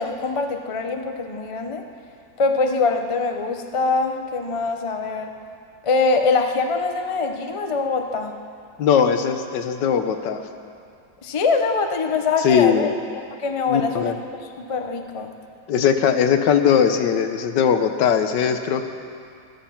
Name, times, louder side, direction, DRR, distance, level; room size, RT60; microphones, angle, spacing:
voice 1, 0.0-1.8 2.4-5.3 5.8-8.3 11.2-12.9 13.4-14.1 14.4-15.3, left 4 dB, 45° left, 5 dB, 0.4 m, -23 dB
voice 2, 8.8-10.4 12.4-12.9 13.7-14.1 15.7-18.8, left 7 dB, 75° left, 7 dB, 1.4 m, -19 dB
13.5 x 13.5 x 5.8 m, 2.4 s
omnidirectional pair, 2.0 m